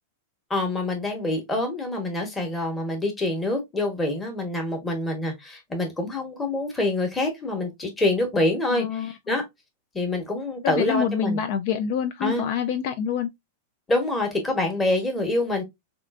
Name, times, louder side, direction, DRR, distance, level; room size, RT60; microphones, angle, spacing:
voice 1, 0.5-9.4 9.9-11.4 12.2-12.5 13.9-15.6, left 2 dB, 10° left, 1.0 m, -26 dB
voice 2, 8.7-9.1 10.6-13.3, left 7 dB, 50° left, 0.3 m, -26 dB
3.6 x 2.4 x 2.3 m
supercardioid pair, 150°, 0 cm